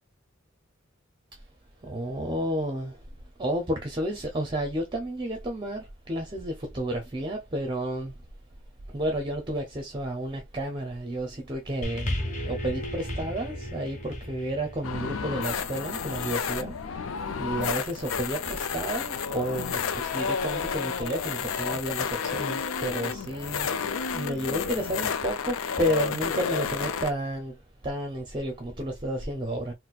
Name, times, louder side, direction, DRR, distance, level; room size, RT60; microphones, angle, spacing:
voice 1, 1.8-3.0 3.4-8.2 8.9-27.6 27.8-29.7, right 1 dB, 25° right, 0.6 m, -31 dB
sound 1, 11.8-16.4 17.2-17.3, left 1 dB, 40° left, 0.8 m, -35 dB
sound 2, 14.8-27.1, left 6 dB, 80° left, 0.5 m, -31 dB
4.1 x 2.1 x 2.3 m
head